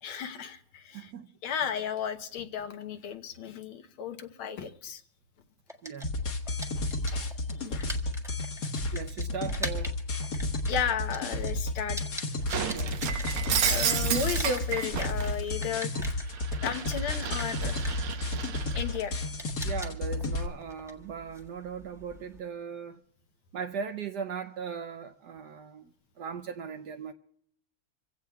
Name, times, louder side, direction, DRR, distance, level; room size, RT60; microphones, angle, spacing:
voice 1, 0.0-1.1 1.4-5.0 6.8-7.3 7.6-7.9 10.7-12.0 13.6-18.0 18.7-19.2, left 7 dB, 75° left, 1.9 m, -34 dB
voice 2, 0.9-1.3 5.8-6.3 8.9-9.9 12.7-13.2 19.6-23.0 23.5-27.1, right 6 dB, 65° right, 1.1 m, -38 dB
sound 1, 5.7-13.9 14.1-22.4, equal, ahead, 1.1 m, -44 dB
sound 2, 6.0-20.5, left 2 dB, 50° left, 1.8 m, -32 dB
Shatter, 12.5-15.3 15.8-18.9, right 8 dB, 85° right, 1.9 m, -32 dB
26.5 x 16.0 x 2.3 m
omnidirectional pair, 2.3 m